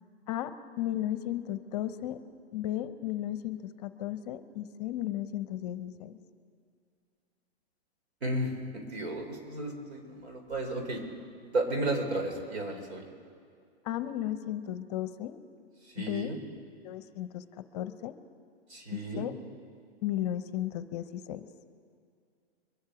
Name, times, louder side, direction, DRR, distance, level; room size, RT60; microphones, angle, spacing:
voice 1, 0.3-2.2 2.5-6.2 13.8-15.4 16.1-16.4 16.7-18.1 18.9-19.3 20.0-21.5, left 12 dB, 40° left, 12 dB, 0.7 m, -35 dB
voice 2, 8.2-11.0 11.4-13.0 15.9-16.4 18.7-19.2, right 1 dB, 90° right, 2 dB, 3.7 m, -33 dB
23.5 x 10.5 x 4.9 m, 2.3 s
hypercardioid pair, 150°, 32 cm